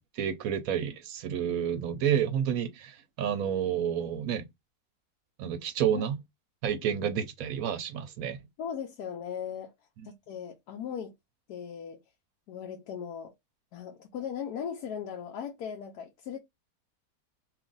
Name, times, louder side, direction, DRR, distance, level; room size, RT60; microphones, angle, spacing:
voice 1, 0.0-4.5 5.4-6.2 6.6-8.4, right 9 dB, 70° right, 1.0 m, -30 dB
voice 2, 8.6-9.7 10.0-11.1 11.5-12.0 12.5-13.3 13.7-16.4, left 8 dB, 80° left, 1.2 m, -38 dB
3.0 x 2.4 x 3.8 m
omnidirectional pair, 1.7 m